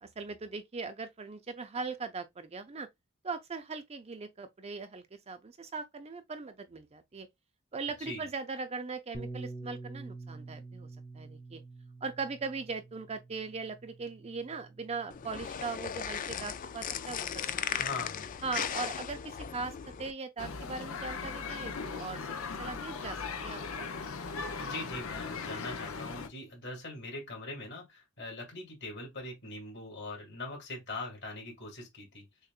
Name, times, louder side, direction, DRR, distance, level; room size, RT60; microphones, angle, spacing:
voice 1, 0.0-2.9 3.2-7.3 7.7-10.9 11.1-11.6 12.0-17.4 17.7-17.8 18.4-23.9, right 4 dB, 30° right, 0.5 m, -40 dB
Bass guitar, 9.1-15.4, right 3 dB, 25° left, 0.9 m, -47 dB
sound 1, 15.1-20.1, left 8 dB, 40° left, 0.3 m, -37 dB
voice 2, 17.8-18.3 24.6-32.3, left 2 dB, 55° left, 2.6 m, -41 dB
sound 2, 20.4-26.3, left 5 dB, 70° left, 0.6 m, -38 dB
6.4 x 2.4 x 2.4 m
head